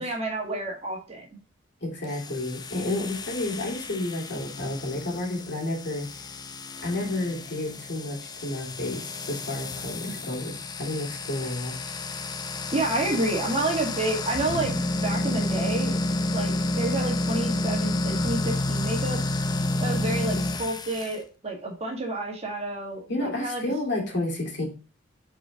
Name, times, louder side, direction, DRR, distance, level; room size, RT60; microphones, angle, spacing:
voice 1, 0.0-1.4 10.1-10.3 12.7-15.9 16.3-19.2 19.8-23.6, right 2 dB, 35° right, 0 dB, 1.8 m, -29 dB
voice 2, 1.8-6.1 6.8-11.7 23.1-24.6, left 2 dB, 60° left, -1 dB, 2.6 m, -31 dB
sound 1, 2.0-21.2, left 2 dB, 20° left, 0.5 m, -30 dB
5.0 x 4.5 x 5.1 m, 0.35 s
head